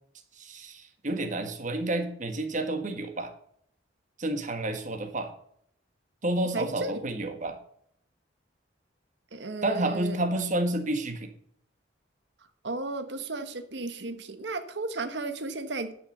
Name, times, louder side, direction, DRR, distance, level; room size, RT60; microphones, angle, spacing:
voice 1, 0.4-3.3 4.2-5.3 6.2-7.6 9.6-11.3, right 1 dB, 40° right, 6 dB, 1.6 m, -30 dB
voice 2, 6.5-7.0 9.3-10.2 12.6-15.9, right 3 dB, 65° right, 9 dB, 1.3 m, -34 dB
11.0 x 6.2 x 6.7 m, 0.66 s
head